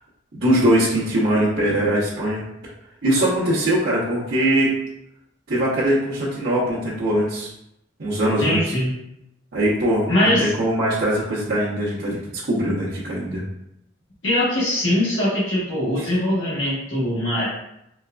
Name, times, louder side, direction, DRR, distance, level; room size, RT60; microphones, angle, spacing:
voice 1, 0.3-2.4 3.0-4.8 5.5-7.5 8.0-8.6 9.5-13.4 16.0-16.1, right 1 dB, 70° right, -11 dB, 0.9 m, -21 dB
voice 2, 8.4-8.9 10.1-10.5 14.2-17.5, left 1 dB, 70° left, -8 dB, 1.2 m, -21 dB
4.2 x 2.4 x 2.2 m, 0.81 s
head